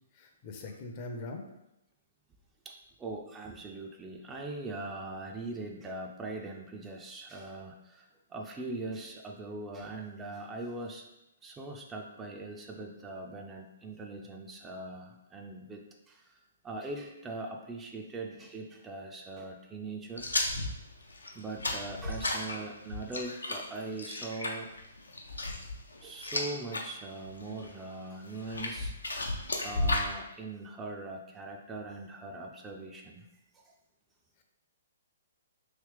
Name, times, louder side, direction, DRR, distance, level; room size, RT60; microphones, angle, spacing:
voice 1, 0.1-1.4, left 2 dB, 40° left, 3 dB, 0.5 m, -41 dB
voice 2, 2.6-11.1 11.4-16.4 16.6-20.3 21.3-24.7 26.0-28.9 29.6-33.3 33.5-33.7, right 2 dB, 15° right, 1 dB, 0.4 m, -41 dB
sound 1, 20.2-26.8 27.2-27.7 28.3-30.1, left 2 dB, 85° left, 0.5 m, -34 dB
3.2 x 2.9 x 3.2 m, 0.89 s
figure-of-eight pair, 125°, 0 cm